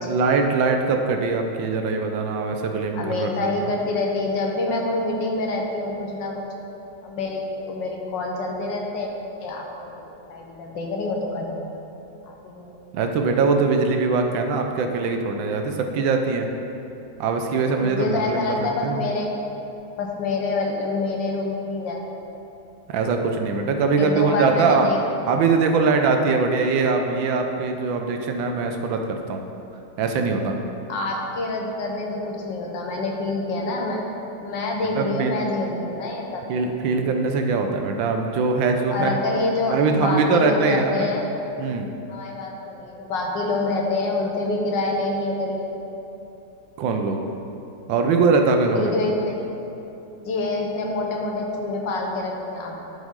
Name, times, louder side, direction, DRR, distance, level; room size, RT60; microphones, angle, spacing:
voice 1, 0.0-3.3 12.9-16.5 17.2-19.0 22.9-24.9 25.3-29.4 30.0-30.5 34.9-35.3 36.5-39.2 39.7-41.1 41.6-41.9 46.8-47.2 47.9-48.9, right 4 dB, 80° right, 4 dB, 1.4 m, -22 dB
voice 2, 2.9-6.5 7.0-9.1 9.4-11.6 12.3-12.8 17.8-19.3 20.0-22.2 23.9-25.0 30.9-34.0 34.4-36.4 38.9-41.3 42.1-45.7 48.7-49.4 50.2-52.8, left 2 dB, 70° left, 0 dB, 1.6 m, -26 dB
12.5 x 5.3 x 3.7 m, 2.9 s
omnidirectional pair, 2.1 m